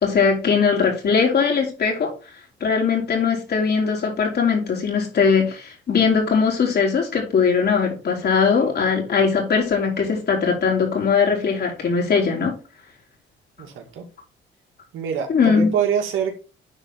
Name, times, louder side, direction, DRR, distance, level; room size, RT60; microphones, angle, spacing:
voice 1, 0.0-2.1 2.6-12.5 15.3-15.8, left 5 dB, 55° left, 1 dB, 3.7 m, -20 dB
voice 2, 13.6-14.0 14.9-16.4, right 8 dB, 85° right, 3 dB, 2.2 m, -25 dB
10.0 x 4.3 x 3.8 m, 0.32 s
cardioid pair, 90°, 20 cm